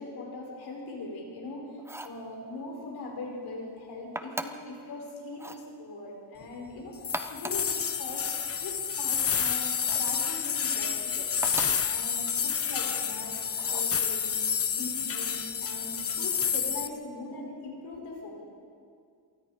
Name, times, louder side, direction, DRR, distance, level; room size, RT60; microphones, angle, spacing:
voice 1, 0.0-8.3 8.6-14.4 14.7-18.4, left 2 dB, 65° left, -1 dB, 5.4 m, -41 dB
sound 1, 1.8-2.2 4.1-4.7 5.3-5.7 7.0-7.7 9.8-10.2 11.4-11.9 13.6-14.0, right 1 dB, 5° right, 0.9 m, -39 dB
sound 2, 7.0-16.9, left 7 dB, 35° left, 0.9 m, -29 dB
27.0 x 19.5 x 5.1 m, 2.3 s
cardioid pair, 130°, 42 cm